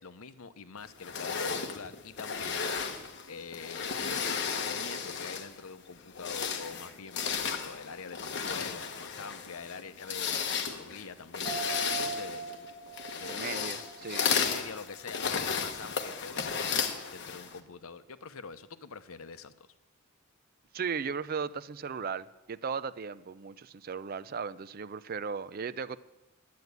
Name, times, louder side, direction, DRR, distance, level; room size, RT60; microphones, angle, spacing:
voice 1, 0.0-12.5 13.1-13.8 14.3-16.7 17.1-19.7, left 5 dB, 80° left, 0.7 m, -45 dB
sound 1, 1.0-5.6 6.1-17.6, left 6 dB, 55° left, 1.1 m, -34 dB
sound 2, 11.4-15.1 15.5-15.6, right 5 dB, 25° right, 5.8 m, -40 dB
voice 2, 13.3-14.3 20.7-26.0, right 6 dB, 45° right, 0.4 m, -36 dB
10.5 x 9.4 x 8.2 m
head